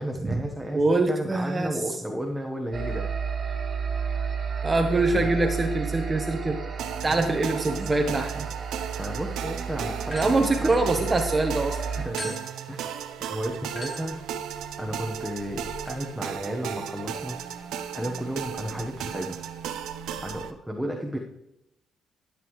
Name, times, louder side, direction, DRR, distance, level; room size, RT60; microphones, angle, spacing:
voice 1, 0.0-0.8 1.1-3.1 5.1-5.3 7.1-7.3 9.0-10.7 11.9-12.4 12.7-13.0 13.3-14.2 14.8-17.4 17.9-19.4 20.2-21.2, equal, 5° right, 0 dB, 1.1 m, -33 dB
voice 2, 0.7-1.7 4.6-6.6 7.0-8.5 10.1-11.8, right 2 dB, 25° right, 4 dB, 1.0 m, -24 dB
sound 1, 2.7-12.1, right 6 dB, 45° right, 1.7 m, -32 dB
sound 2, 6.8-20.5, right 9 dB, 85° right, 0.7 m, -36 dB
sound 3, 10.1-11.5 12.2-20.5, left 1 dB, 30° left, 2.4 m, -45 dB
13.0 x 8.3 x 3.2 m, 0.83 s
cardioid pair, 90°, 0 cm